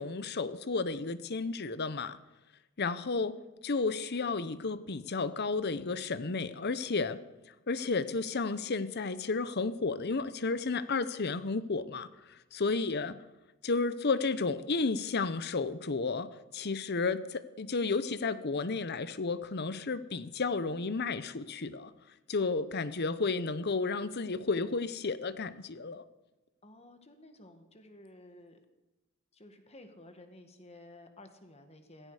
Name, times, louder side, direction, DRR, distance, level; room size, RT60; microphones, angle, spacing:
voice 1, 0.0-2.2 2.8-3.3 3.6-7.2 7.7-13.2 13.6-21.9 22.3-26.0, left 4 dB, 50° left, 15 dB, 0.8 m, -32 dB
voice 2, 12.7-13.0 26.6-28.6 29.3-32.1, left 1 dB, 30° left, 7 dB, 1.7 m, -54 dB
16.5 x 15.5 x 4.9 m, 1.0 s
head